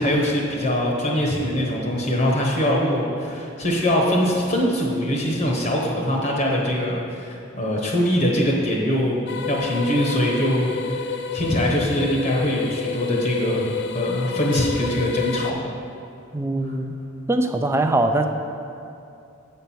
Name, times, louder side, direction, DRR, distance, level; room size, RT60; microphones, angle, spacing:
voice 1, 0.0-9.2 9.5-10.7 10.9-15.6, equal, 40° left, -2 dB, 1.0 m, -22 dB
sound 1, 9.3-15.5, left 6 dB, 60° left, 0.4 m, -30 dB
voice 2, 16.3-16.9 17.3-18.3, right 2 dB, 10° right, 6 dB, 0.4 m, -21 dB
7.8 x 4.4 x 7.0 m, 2.7 s
head